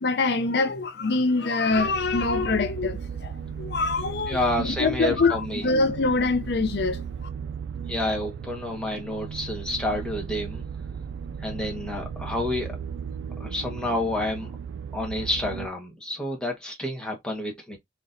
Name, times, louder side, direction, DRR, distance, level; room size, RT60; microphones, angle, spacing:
voice 1, 0.0-7.0, left 3 dB, 70° left, 0.5 m, -24 dB
sound 1, 1.7-15.7, right 7 dB, 85° right, 0.3 m, -36 dB
voice 2, 4.3-5.7 7.9-10.6 11.4-12.8 13.4-14.5 14.9-17.8, left 1 dB, 5° left, 1.3 m, -29 dB
4.1 x 3.0 x 2.6 m
head